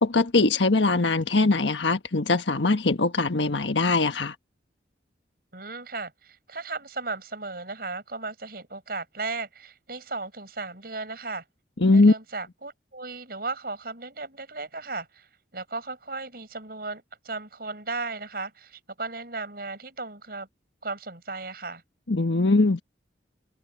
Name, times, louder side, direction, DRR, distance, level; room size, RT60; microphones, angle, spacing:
voice 1, 0.0-4.3 11.8-12.1 22.1-22.8, left 3 dB, 85° left, 1.4 m, -21 dB
voice 2, 5.5-11.4 11.9-20.5 20.8-21.8, right 3 dB, 55° right, 7.8 m, -36 dB
head